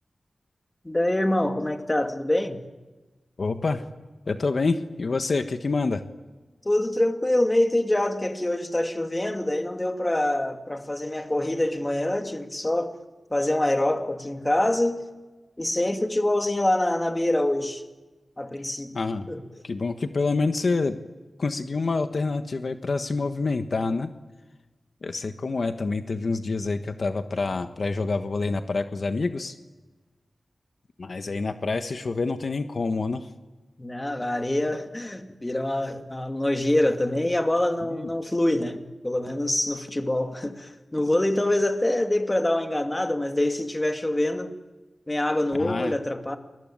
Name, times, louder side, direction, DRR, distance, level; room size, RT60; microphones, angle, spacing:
voice 1, 0.8-2.6 6.6-13.0 13.3-15.0 15.6-17.8 18.4-18.9 19.3-19.4 33.8-44.6 45.1-46.4, left 1 dB, 20° left, 2.5 m, -25 dB
voice 2, 3.4-3.8 4.3-6.0 18.9-19.3 19.6-21.0 21.4-24.1 25.0-29.5 31.0-33.3 37.9-38.1 45.6-45.9, left 3 dB, 65° left, 1.4 m, -27 dB
29.5 x 22.0 x 9.0 m
wide cardioid pair, 70°, 0 cm